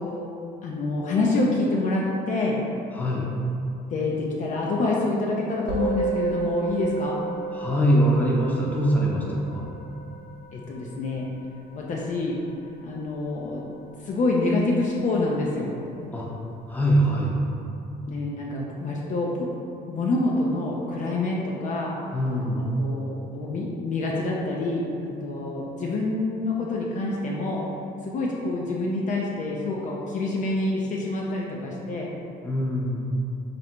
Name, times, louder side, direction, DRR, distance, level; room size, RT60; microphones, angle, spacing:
voice 1, 0.6-2.6 3.9-7.2 10.5-11.3 11.7-12.4 12.8-13.6 14.0-15.7 18.1-19.5 19.9-21.9 22.6-27.6 28.0-32.1, left 2 dB, 45° left, -3 dB, 0.5 m, -27 dB
voice 2, 2.9-3.2 7.5-9.7 16.1-16.3 16.7-17.4 22.1-22.7 32.4-33.1, equal, 10° left, -4 dB, 0.7 m, -23 dB
Musical instrument, 5.7-15.2, right 4 dB, 70° right, 0.7 m, -34 dB
3.1 x 2.6 x 4.3 m, 2.7 s
cardioid pair, 110°, 17 cm